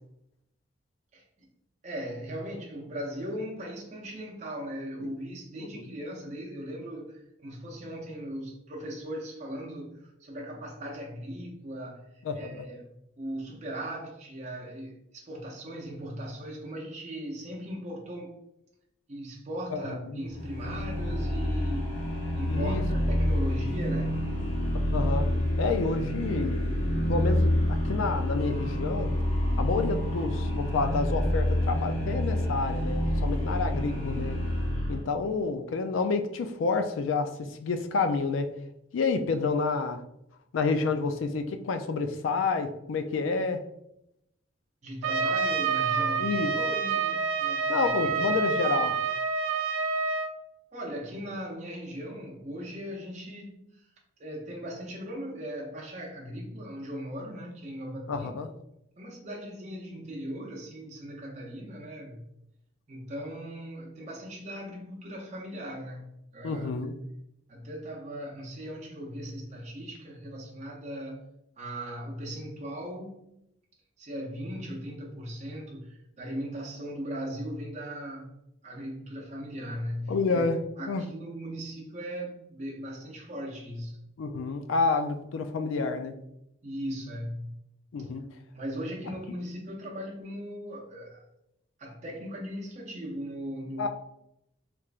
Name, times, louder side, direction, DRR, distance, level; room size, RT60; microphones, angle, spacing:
voice 1, 1.1-1.5 1.8-18.4 19.1-21.9 22.3-24.2 44.8-48.4 50.7-53.6 54.2-58.4 59.0-62.3 62.9-66.1 66.3-66.7 67.5-71.2 71.6-73.3 74.0-78.3 78.6-80.5 80.8-84.0 86.6-87.6 88.0-88.1 88.5-91.2 91.8-93.9, equal, 35° right, -3 dB, 0.5 m, -38 dB
voice 2, 12.2-12.6 19.7-20.2 22.5-22.8 24.9-25.3 25.6-26.8 27.1-29.1 29.6-34.4 34.9-38.5 38.9-40.0 40.5-43.6 46.2-46.5 47.7-49.0 58.1-58.5 66.4-66.9 80.1-80.6 80.9-81.0 84.2-86.1 87.9-88.3 93.8-93.9, left 4 dB, 85° left, 8 dB, 0.4 m, -29 dB
sound 1, 20.3-35.1, left 1 dB, 30° left, 0.6 m, -28 dB
Trumpet, 45.0-50.3, right 5 dB, 90° right, 0.3 m, -28 dB
3.3 x 3.0 x 2.4 m, 0.81 s
head